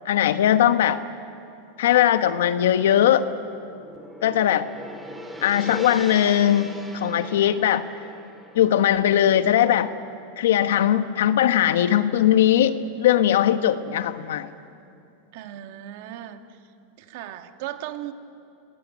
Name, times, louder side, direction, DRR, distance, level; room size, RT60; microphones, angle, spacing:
voice 1, 0.0-1.0 1.8-3.3 4.2-4.7 5.4-7.8 8.5-9.9 10.4-14.5, left 11 dB, 90° left, 10 dB, 1.3 m, -20 dB
Gong, 3.1-11.5, equal, 5° right, 2.4 m, -42 dB
voice 2, 15.3-16.7 17.0-18.1, right 12 dB, 55° right, 7 dB, 1.8 m, -37 dB
26.0 x 19.5 x 9.7 m, 2.6 s
supercardioid pair, 160°, 0 cm